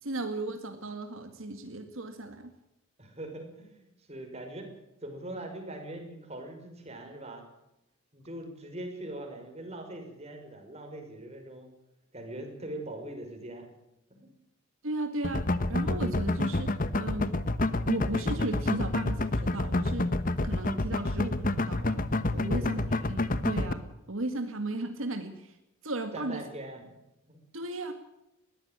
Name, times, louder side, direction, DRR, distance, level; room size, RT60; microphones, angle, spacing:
voice 1, 0.0-2.5 14.8-15.4 15.7-17.3 17.9-20.1 20.4-22.0 22.3-25.6 25.8-26.4 27.5-27.9, right 2 dB, 75° right, 6 dB, 2.1 m, -35 dB
voice 2, 3.0-4.7 5.0-7.4 8.1-11.7 12.1-13.7 14.1-14.3 22.4-22.9 26.1-26.8 27.2-27.4, right 1 dB, 30° right, 4 dB, 5.4 m, -42 dB
sound 1, 15.2-23.7, left 2 dB, 40° left, 1.1 m, -28 dB
20.5 x 15.0 x 8.9 m, 0.88 s
head